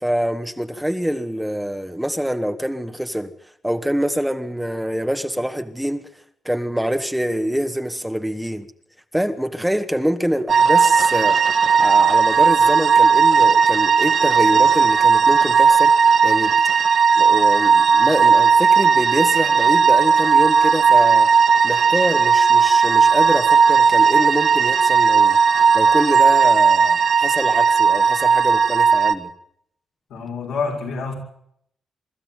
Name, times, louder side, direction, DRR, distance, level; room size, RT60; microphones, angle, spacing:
voice 1, 0.0-3.3 3.6-6.1 6.5-8.7 9.1-11.4 11.8-15.9 16.2-16.5 17.2-21.3 21.6-25.4 25.7-29.3, equal, 5° right, 1.9 m, -25 dB
sound 1, 10.5-29.1, right 6 dB, 65° right, 1.7 m, -15 dB
voice 2, 30.1-31.1, left 4 dB, 85° left, 7.0 m, -27 dB
24.5 x 13.0 x 9.4 m
cardioid pair, 65°, 0 cm